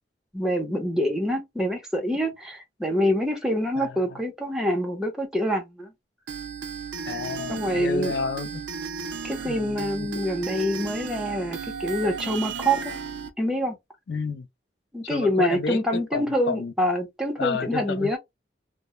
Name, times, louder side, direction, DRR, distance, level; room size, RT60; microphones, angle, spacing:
voice 1, 0.3-5.9 7.5-8.2 9.2-12.9 13.4-13.8 14.9-18.2, equal, 5° right, 0.7 m, -26 dB
voice 2, 3.8-4.2 7.1-8.6 9.5-10.1 14.1-14.5 15.0-15.8 16.1-16.7 17.4-18.2, left 5 dB, 70° left, 0.4 m, -31 dB
sound 1, 6.3-13.3, right 6 dB, 80° right, 0.5 m, -35 dB
2.2 x 2.0 x 2.9 m
head